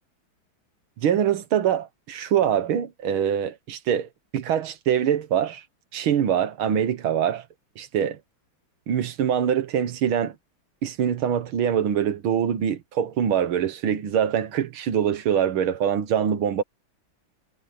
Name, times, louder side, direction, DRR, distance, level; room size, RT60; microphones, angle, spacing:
voice 1, 1.0-5.6 5.9-7.5 7.8-8.2 8.9-10.4 10.8-16.6, right 9 dB, 75° right, 2.0 m, -24 dB
omnidirectional pair, 2.3 m